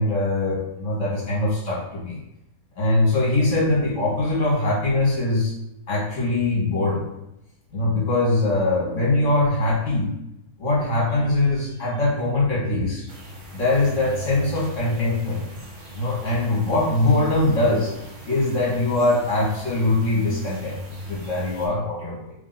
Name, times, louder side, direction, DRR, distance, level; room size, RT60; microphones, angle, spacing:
voice 1, 0.0-2.2 2.7-5.5 5.9-7.0 7.7-10.1 10.6-13.0 13.5-15.4 15.9-17.9 18.3-20.8 21.1-22.3, left 2 dB, 60° left, -6 dB, 1.5 m, -22 dB
sound 1, 13.1-21.7, equal, 40° right, 0.8 m, -38 dB
3.2 x 2.6 x 3.9 m, 0.84 s
omnidirectional pair, 1.5 m